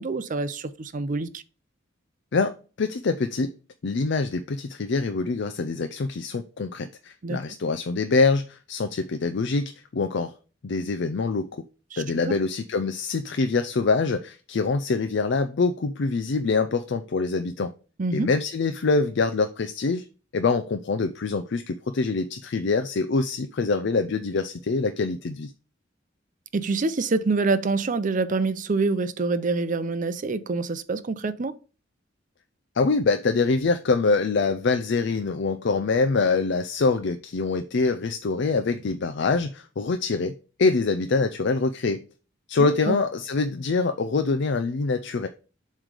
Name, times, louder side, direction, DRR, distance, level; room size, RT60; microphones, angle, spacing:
voice 1, 0.0-1.4 7.2-7.4 11.9-12.4 18.0-18.3 26.5-31.5 42.6-43.0, right 3 dB, 45° right, 0.6 m, -26 dB
voice 2, 2.3-3.5 3.8-10.3 10.6-11.5 12.0-17.7 18.1-20.0 20.3-25.5 32.8-40.3 40.6-42.0 42.5-45.3, left 4 dB, 65° left, 0.5 m, -25 dB
7.4 x 3.2 x 5.1 m
head